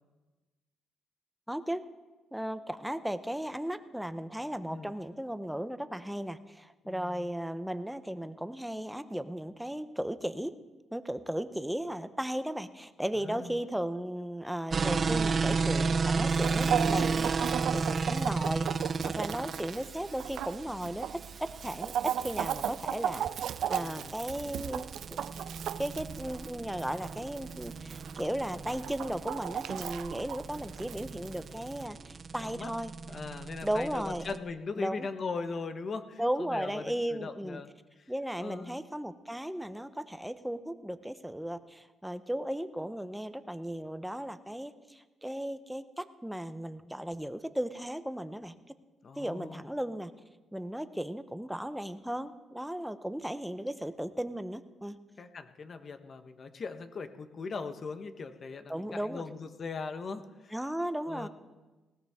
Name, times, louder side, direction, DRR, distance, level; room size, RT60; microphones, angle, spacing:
voice 1, 1.5-1.9 2.3-10.5 10.9-18.7 19.0-25.2 25.8-32.9 33.6-34.3 34.8-35.1 36.2-37.6 38.1-48.7 49.2-50.1 50.5-55.0 58.7-59.2 60.5-61.3, right 1 dB, 5° right, 11 dB, 0.8 m, -36 dB
voice 2, 6.8-7.3 13.2-13.6 23.7-24.1 32.4-32.7 33.1-37.7 38.0-38.1 38.4-38.8 49.0-49.7 55.2-60.6 61.1-61.3, left 4 dB, 45° left, 9 dB, 1.2 m, -40 dB
sound 1, 14.7-34.4, right 4 dB, 40° right, 0.7 m, -33 dB
Chicken rooster, 16.3-31.9, right 10 dB, 70° right, 0.4 m, -37 dB
19.0 x 17.0 x 3.6 m, 1.2 s
cardioid pair, 90°, 0 cm